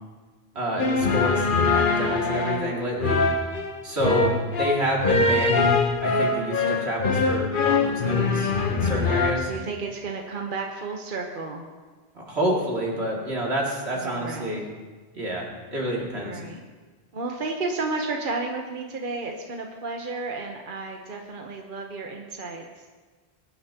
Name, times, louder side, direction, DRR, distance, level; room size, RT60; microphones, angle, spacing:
voice 1, 0.5-3.2 3.8-4.3 4.6-9.5 12.1-14.6 15.1-16.4, right 1 dB, 85° right, -3 dB, 2.8 m, -28 dB
sound 1, 0.8-9.3, left 4 dB, 55° left, 1.2 m, -23 dB
voice 2, 7.8-8.6 9.4-11.7 13.9-14.6 16.2-16.6 17.1-22.8, right 3 dB, 55° right, 1 dB, 1.2 m, -32 dB
22.0 x 10.5 x 2.9 m, 1.4 s
omnidirectional pair, 1.1 m